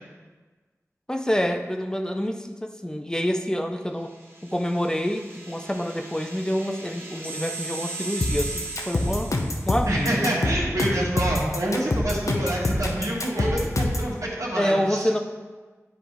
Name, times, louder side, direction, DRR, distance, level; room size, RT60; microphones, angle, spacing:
voice 1, 1.1-4.1 4.4-9.3 9.7-10.3 14.6-15.2, equal, 15° left, 5 dB, 0.5 m, -27 dB
sound 1, 4.1-10.0, right 3 dB, 40° right, 1.4 m, -38 dB
sound 2, 8.2-14.1, left 1 dB, 70° left, 0.7 m, -25 dB
voice 2, 9.9-15.1, right 1 dB, 80° right, -4 dB, 1.6 m, -27 dB
9.9 x 3.4 x 4.5 m, 1.3 s
wide cardioid pair, 50°, 6 cm